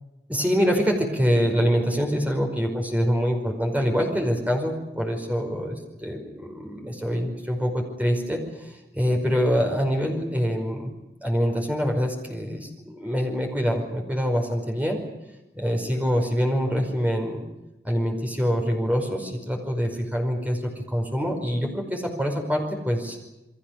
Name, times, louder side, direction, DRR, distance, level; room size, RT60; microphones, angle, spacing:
voice 1, 0.3-10.9 11.2-15.0 15.5-17.4 17.8-23.2, equal, 10° right, 2 dB, 5.3 m, -25 dB
29.5 x 22.5 x 6.6 m, 0.98 s
head